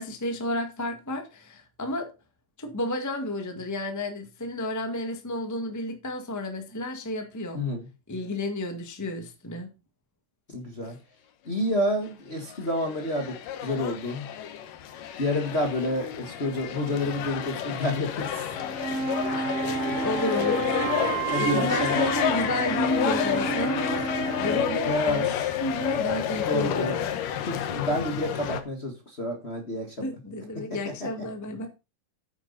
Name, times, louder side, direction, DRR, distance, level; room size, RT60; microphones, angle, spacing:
voice 1, 0.0-2.1 2.6-7.6 8.1-9.7 10.8-10.9 18.3-18.4 19.4-20.9 21.4-24.0 24.4-27.1 30.0-31.7, left 1 dB, 25° left, 0.4 m, -31 dB
voice 2, 7.5-7.9 10.5-11.0 11.4-13.4 13.6-14.3 15.2-18.4 21.3-22.1 24.8-25.3 26.4-26.9 27.5-30.1 30.5-31.1, left 1 dB, 40° left, 0.9 m, -29 dB
sound 1, 12.5-28.6, left 9 dB, 75° left, 2.7 m, -30 dB
sound 2, 18.5-24.7, right 4 dB, 65° right, 1.5 m, -32 dB
sound 3, 19.7-24.9, right 8 dB, 85° right, 3.2 m, -36 dB
9.4 x 9.0 x 4.1 m
omnidirectional pair, 4.0 m